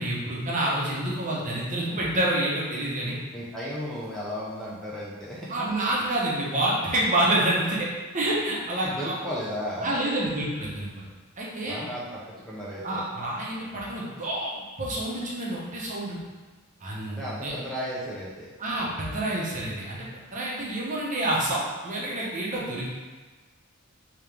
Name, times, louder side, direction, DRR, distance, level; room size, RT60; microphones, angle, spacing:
voice 1, 0.0-3.2 5.5-7.9 8.1-9.1 9.8-11.1 11.4-11.8 12.8-14.5 14.8-16.2 16.8-17.5 18.6-22.9, right 1 dB, 35° right, -5 dB, 0.8 m, -28 dB
voice 2, 3.3-5.7 8.8-10.0 11.6-13.0 17.1-18.5, equal, ahead, -8 dB, 0.5 m, -34 dB
3.6 x 2.9 x 3.3 m, 1.3 s
head